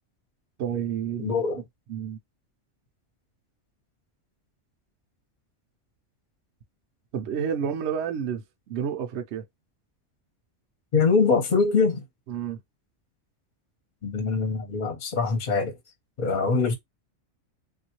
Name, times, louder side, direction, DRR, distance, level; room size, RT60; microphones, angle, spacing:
voice 1, 0.6-1.6 1.9-2.2 7.1-9.4 12.3-12.6, right 8 dB, 70° right, 0.8 m, -30 dB
voice 2, 1.2-1.6 10.9-12.0 14.0-15.7 16.2-16.8, left 4 dB, 45° left, 0.9 m, -23 dB
3.4 x 2.5 x 2.8 m
omnidirectional pair, 1.3 m